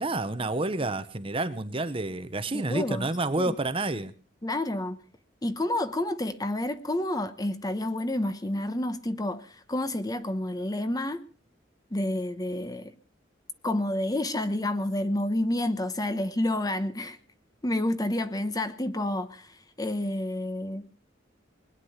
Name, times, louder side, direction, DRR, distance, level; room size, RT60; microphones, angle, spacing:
voice 1, 0.0-4.1, right 2 dB, 30° right, 1.0 m, -29 dB
voice 2, 2.5-3.1 3.4-3.5 4.4-5.0 5.4-11.2 11.9-12.9 13.6-17.2 17.6-20.9, left 1 dB, 20° left, 1.0 m, -29 dB
21.0 x 9.9 x 5.8 m
head